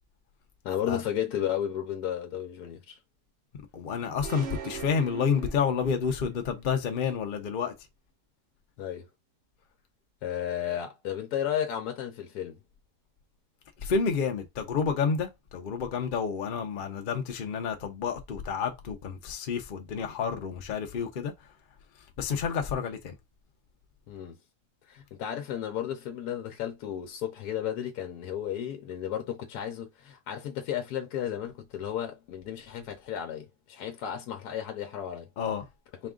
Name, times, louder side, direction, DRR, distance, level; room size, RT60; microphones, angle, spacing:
voice 1, 0.6-3.0 8.8-9.1 10.2-12.6 24.1-24.4 24.9-35.3, left 10 dB, 80° left, 1.2 m, -33 dB
voice 2, 3.7-7.7 13.8-21.3 22.2-23.1 35.4-35.7, left 6 dB, 50° left, 0.6 m, -29 dB
sound 1, 4.2-6.2, right 8 dB, 60° right, 0.8 m, -41 dB
4.3 x 2.4 x 3.7 m
omnidirectional pair, 1.7 m